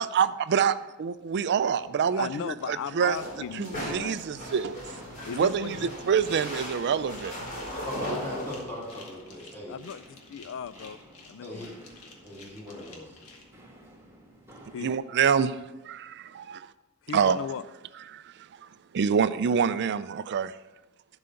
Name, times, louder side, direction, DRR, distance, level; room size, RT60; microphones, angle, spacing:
voice 1, 0.0-3.2 3.5-4.8 5.3-5.8 6.0-7.3 14.8-15.6 15.8-16.7 17.1-17.4 18.1-18.3 18.9-20.5, right 7 dB, 50° right, 14 dB, 0.4 m, -26 dB
Walk footsteps, 1.2-15.0, right 1 dB, 10° right, 1.5 m, -55 dB
voice 2, 2.0-4.2 5.2-5.9 9.7-11.0 11.3-11.8 14.7-14.9 17.0-17.6, left 7 dB, 60° left, 16 dB, 0.4 m, -37 dB
sound 1, 3.0-8.6, equal, 40° left, 3.2 m, -37 dB
sound 2, 7.1-13.4, left 4 dB, 80° left, 1.6 m, -51 dB
voice 3, 7.8-9.7 10.4-10.5 11.4-11.7 12.0-13.2, left 1 dB, 10° left, -6 dB, 2.7 m, -39 dB
11.5 x 4.9 x 5.7 m, 1.1 s
head